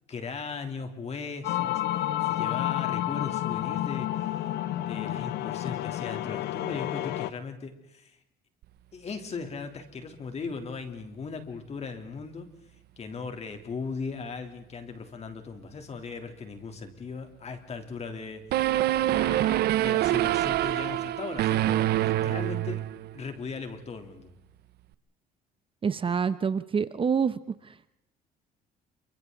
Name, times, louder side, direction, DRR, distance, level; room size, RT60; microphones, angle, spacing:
voice 1, 0.1-1.8 2.2-4.4 4.8-8.1 8.9-12.5 13.0-18.4 19.1-22.8 23.1-24.3, left 4 dB, 40° left, 6 dB, 3.3 m, -38 dB
sound 1, 1.4-7.3, left 14 dB, 80° left, 1.0 m, -30 dB
sound 2, 18.5-23.2, right 14 dB, 70° right, 0.9 m, -25 dB
voice 2, 25.8-27.4, right 6 dB, 30° right, 14 dB, 0.9 m, -26 dB
28.5 x 24.5 x 4.0 m, 0.83 s
cardioid pair, 110°, 17 cm